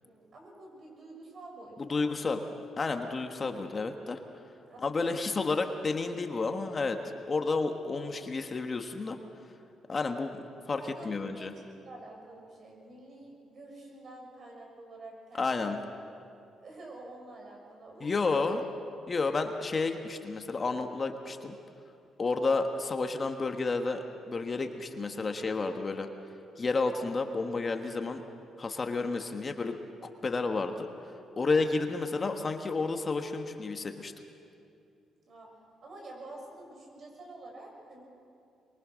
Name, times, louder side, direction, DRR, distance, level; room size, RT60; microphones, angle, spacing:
voice 1, 0.0-2.3 4.7-5.4 10.8-15.8 16.6-18.1 18.4-18.6 35.3-35.5 35.8-38.0, right 2 dB, 50° right, 0 dB, 6.9 m, -48 dB
voice 2, 1.8-2.4 2.8-4.2 4.8-7.0 7.3-9.2 9.9-10.4 10.7-11.5 15.4-15.8 18.0-18.6 19.1-21.5 22.2-26.1 26.6-28.2 28.6-29.8 30.0-30.9 31.3-34.1, left 3 dB, 35° left, 5 dB, 1.4 m, -31 dB
24.5 x 22.5 x 6.4 m, 2.6 s
cardioid pair, 90°, 0 cm